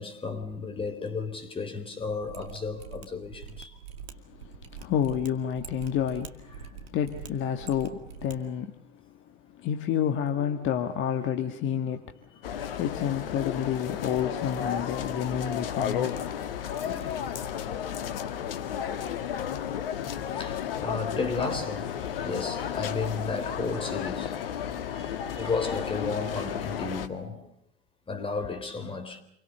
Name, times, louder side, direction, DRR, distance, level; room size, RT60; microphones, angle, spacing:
voice 1, 0.0-3.8 16.7-17.5 20.3-24.5 24.9-27.5 28.1-29.2, left 4 dB, 15° left, 4.3 m, -34 dB
Mechanisms, 2.2-8.3 8.6-8.7, right 7 dB, 70° right, 2.4 m, -44 dB
voice 2, 4.3-8.8 9.5-12.1 12.8-16.2, left 9 dB, 40° left, 1.7 m, -29 dB
sound 1, 12.4-27.1, left 9 dB, 65° left, 1.7 m, -33 dB
28.5 x 24.0 x 6.7 m
figure-of-eight pair, 80°, 31 cm